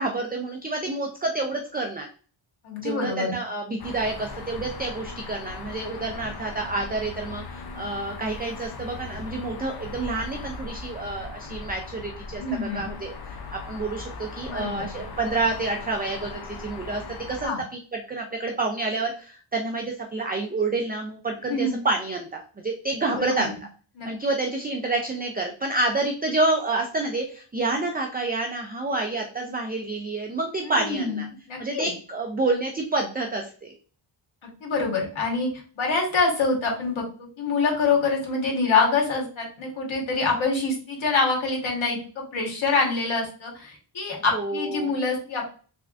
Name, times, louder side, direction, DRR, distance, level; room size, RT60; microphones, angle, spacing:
voice 1, 0.0-2.1 2.8-17.0 17.3-17.8 18.1-23.5 24.0-31.3 31.6-33.7 44.3-44.9, right 2 dB, 20° right, 2 dB, 0.5 m, -28 dB
voice 2, 2.6-3.4 12.4-12.9 14.5-14.9 17.4-17.6 21.5-21.8 23.1-23.6 23.9-24.1 30.6-31.9 34.4-35.5 35.8-37.0 37.4-45.5, left 4 dB, 80° left, 0 dB, 1.3 m, -25 dB
sound 1, 3.8-17.5, left 3 dB, 55° left, 0.7 m, -39 dB
3.7 x 3.4 x 2.4 m, 0.40 s
wide cardioid pair, 95°, 47 cm